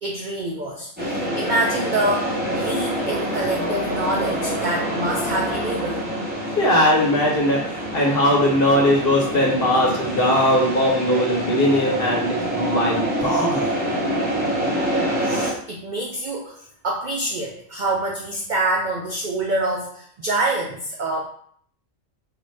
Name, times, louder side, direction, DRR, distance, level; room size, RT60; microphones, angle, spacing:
voice 1, 0.0-6.1 15.2-21.2, right 2 dB, 80° right, -1 dB, 0.4 m, -26 dB
sound 1, 1.0-15.5, right 1 dB, 10° right, 0.8 m, -26 dB
voice 2, 6.5-13.7, left 1 dB, 50° left, -3 dB, 1.1 m, -20 dB
3.9 x 2.1 x 3.2 m, 0.62 s
omnidirectional pair, 1.3 m